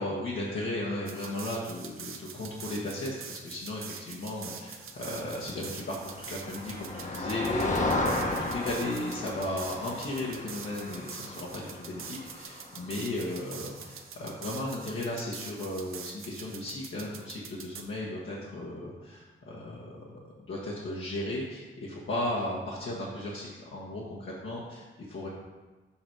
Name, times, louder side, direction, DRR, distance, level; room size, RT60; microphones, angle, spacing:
voice 1, 0.0-25.3, left 1 dB, 70° left, -6 dB, 1.3 m, -35 dB
sound 1, 1.0-17.8, right 6 dB, 80° right, 0.7 m, -45 dB
Motor vehicle (road), 5.7-13.5, left 2 dB, 35° left, 1.0 m, -34 dB
7.1 x 5.1 x 4.7 m, 1.2 s
cardioid pair, 80°, 21 cm